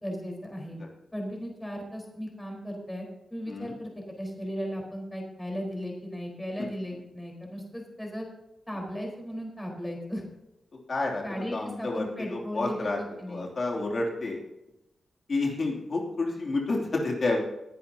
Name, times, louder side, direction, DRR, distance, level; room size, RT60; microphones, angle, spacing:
voice 1, 0.0-0.8 1.1-3.1 3.3-8.3 8.7-10.2 11.2-13.5, equal, 10° left, 0 dB, 4.2 m, -36 dB
voice 2, 10.9-13.0 13.3-14.4 15.3-17.4, left 2 dB, 55° left, -1 dB, 2.8 m, -29 dB
21.0 x 11.0 x 2.8 m, 0.92 s
cardioid pair, 80°, 0 cm